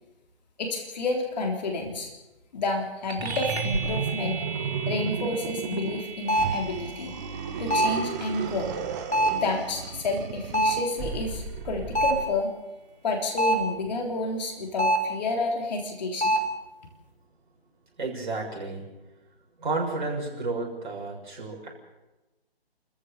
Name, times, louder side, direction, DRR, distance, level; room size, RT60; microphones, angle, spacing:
voice 1, 0.6-2.1 2.5-4.4 4.9-7.1 7.6-8.7 9.3-12.5 13.0-16.4, left 2 dB, 40° left, 2 dB, 3.7 m, -30 dB
sound 1, 3.1-12.9, right 4 dB, 75° right, 4.5 m, -38 dB
sound 2, 3.2-12.3, right 6 dB, 15° right, 1.1 m, -34 dB
sound 3, 6.3-6.7 7.7-8.1 9.1-9.5 10.5-10.9 12.0-12.3 13.4-13.8 14.8-15.2 16.2-16.6, right 1 dB, 90° left, 4.5 m, -24 dB
voice 2, 18.0-18.9 19.6-21.7, right 3 dB, 50° right, -1 dB, 6.7 m, -31 dB
29.5 x 14.5 x 6.9 m, 1.0 s
figure-of-eight pair, 150°, 32 cm